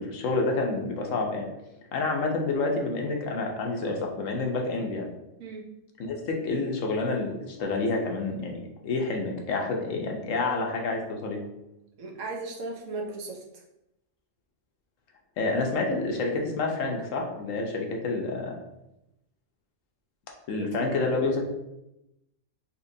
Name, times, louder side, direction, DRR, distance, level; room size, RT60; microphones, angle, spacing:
voice 1, 0.0-1.5 1.9-5.1 6.0-8.6 8.8-11.4 15.4-18.6 20.5-21.4, left 3 dB, 80° left, 1 dB, 1.1 m, -28 dB
voice 2, 12.0-13.4 20.6-20.9, right 3 dB, 75° right, -1 dB, 1.1 m, -36 dB
4.2 x 2.8 x 2.6 m, 0.89 s
omnidirectional pair, 1.3 m